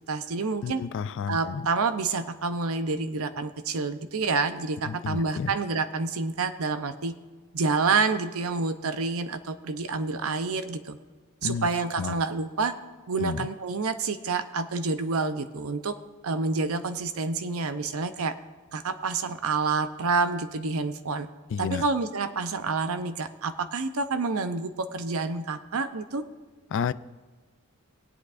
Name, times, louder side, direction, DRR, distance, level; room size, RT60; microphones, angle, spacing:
voice 1, 0.1-0.8 1.3-7.1 7.5-11.0 11.4-12.7 13.1-16.0 16.2-18.3 18.7-21.3 21.6-26.2, right 4 dB, 70° right, 10 dB, 0.7 m, -28 dB
voice 2, 0.6-1.6 4.9-5.5 11.4-11.7 12.0-12.1 13.2-13.5 21.5-21.8 26.7-26.9, left 6 dB, 60° left, 15 dB, 0.4 m, -30 dB
21.0 x 8.3 x 2.5 m, 1.4 s
head